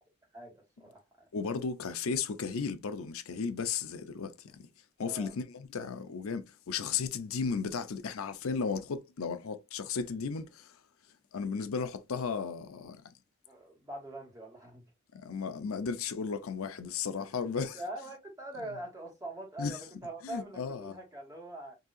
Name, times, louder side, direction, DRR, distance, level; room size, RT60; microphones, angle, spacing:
voice 1, 0.3-1.3 5.0-5.3 13.4-14.8 17.3-21.8, right 1 dB, 15° right, 1.4 m, -43 dB
voice 2, 1.3-4.7 5.0-10.7 11.3-13.1 15.1-17.8 19.6-19.8 20.2-21.0, left 5 dB, 90° left, 0.5 m, -35 dB
4.0 x 2.7 x 2.5 m
head